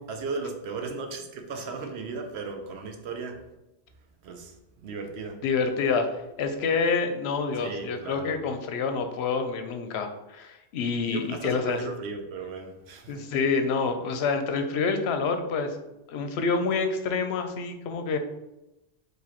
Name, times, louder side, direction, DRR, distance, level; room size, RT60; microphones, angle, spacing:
voice 1, 0.1-3.4 4.2-4.6 4.8-5.4 7.6-8.4 11.1-13.3, right 4 dB, 75° right, 4 dB, 0.9 m, -36 dB
voice 2, 5.4-11.8 13.1-15.8 16.1-18.2, left 4 dB, 75° left, 7 dB, 0.8 m, -27 dB
4.7 x 3.1 x 2.9 m, 0.94 s
omnidirectional pair, 1.1 m